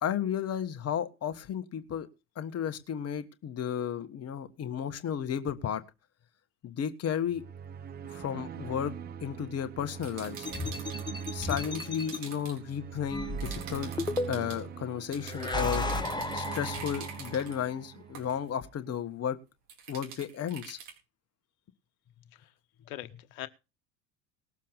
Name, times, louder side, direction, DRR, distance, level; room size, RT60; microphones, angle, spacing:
voice 1, 0.0-2.1 2.3-5.8 6.6-7.4 8.1-8.9 9.2-10.5 11.3-13.9 14.3-15.8 16.3-19.4 19.9-20.8, left 8 dB, 30° left, 1.5 m, -33 dB
sound 1, 7.3-18.6, right 8 dB, 20° right, 0.5 m, -42 dB
sound 2, 10.0-12.6 13.4-14.6 15.1-17.6 18.1-18.4 19.7-20.9, right 7 dB, 65° right, 4.4 m, -45 dB
sound 3, 10.5-12.2 13.1-14.6 15.2-17.4, left 2 dB, 10° left, 1.4 m, -34 dB
voice 2, 22.9-23.5, left 14 dB, 60° left, 1.3 m, -42 dB
19.5 x 7.3 x 4.1 m
figure-of-eight pair, 70°, 50 cm